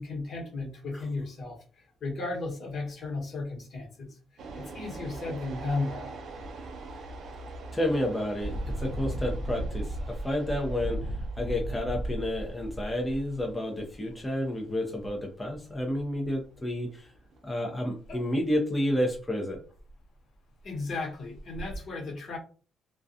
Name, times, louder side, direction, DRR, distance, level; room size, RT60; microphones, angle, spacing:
voice 1, 0.0-4.2 4.5-6.2 18.1-18.2 20.6-22.4, left 3 dB, 60° left, -1 dB, 1.2 m, -35 dB
sound 1, 4.4-17.5, right 3 dB, 65° right, 0.4 m, -45 dB
Engine, 6.3-6.5 6.9-7.1 8.3-14.1 15.0-15.1 15.5-16.3 18.0-18.2 18.5-18.6 19.1-19.2 19.5-20.0 20.6-20.7 21.3-21.8, right 1 dB, 75° left, 0.8 m, -35 dB
voice 2, 7.7-17.1 17.4-19.6, left 1 dB, 15° left, 0 dB, 0.6 m, -30 dB
2.3 x 2.2 x 2.6 m, 0.39 s
cardioid pair, 90°, 0 cm